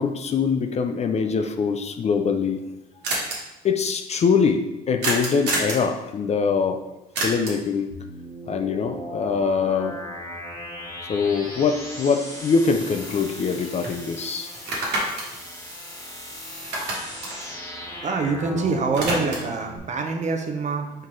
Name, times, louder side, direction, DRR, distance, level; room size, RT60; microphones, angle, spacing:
voice 1, 0.0-2.6 3.6-6.8 7.2-7.9 8.5-10.0 11.1-14.5, left 5 dB, 40° left, 6 dB, 0.4 m, -23 dB
sound 1, 2.6-2.7 3.0-3.4 5.0-5.8 7.1-7.7 11.9-12.0 12.4-13.5 13.8-14.0 14.5-16.3 16.6-18.4 18.7-19.6, right 2 dB, 80° right, 1.4 m, -28 dB
sound 2, 7.9-19.8, left 1 dB, 15° left, 1.3 m, -37 dB
voice 2, 18.0-20.9, right 4 dB, 40° right, 5 dB, 0.7 m, -25 dB
4.4 x 3.7 x 3.1 m, 1.0 s
cardioid pair, 85°, 18 cm